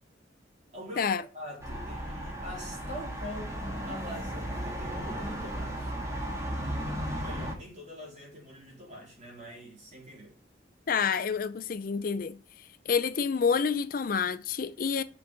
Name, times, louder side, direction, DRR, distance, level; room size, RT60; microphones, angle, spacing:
voice 1, 0.7-3.6 3.9-6.0 7.1-10.3, equal, 40° right, 3.9 m, -44 dB
sound 1, 1.6-7.5, equal, 15° right, 1.8 m, -35 dB
voice 2, 10.9-12.4 12.9-15.0, left 6 dB, 50° left, 0.4 m, -28 dB
6.9 x 5.8 x 5.2 m
head